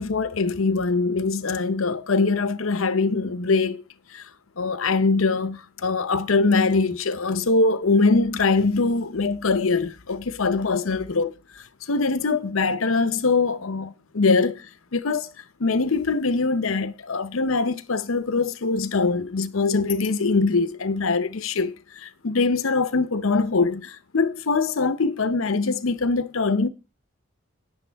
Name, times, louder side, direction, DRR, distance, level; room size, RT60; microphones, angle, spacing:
voice 1, 0.0-3.8 4.1-4.2 4.6-11.3 11.9-15.3 15.6-26.7, left 3 dB, 80° left, 0.8 m, -23 dB
10.5 x 9.7 x 3.5 m
head